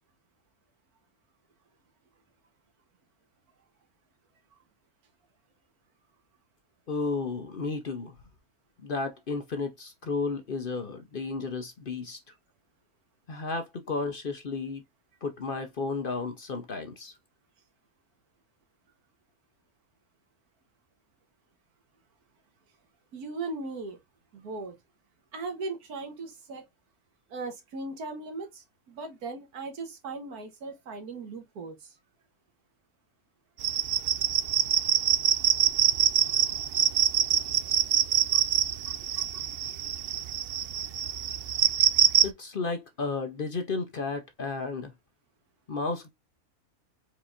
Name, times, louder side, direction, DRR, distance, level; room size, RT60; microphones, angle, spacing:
voice 1, 6.9-8.1 8.8-12.2 13.3-14.8 15.2-17.1 42.2-44.9 45.7-46.1, left 4 dB, 45° left, 0.8 m, -33 dB
voice 2, 23.1-24.0 24.3-24.8 25.3-26.6 27.3-31.9, right 3 dB, 90° right, 1.7 m, -38 dB
sound 1, 33.6-42.3, right 10 dB, 75° right, 0.5 m, -25 dB
4.7 x 4.2 x 2.5 m
omnidirectional pair, 1.5 m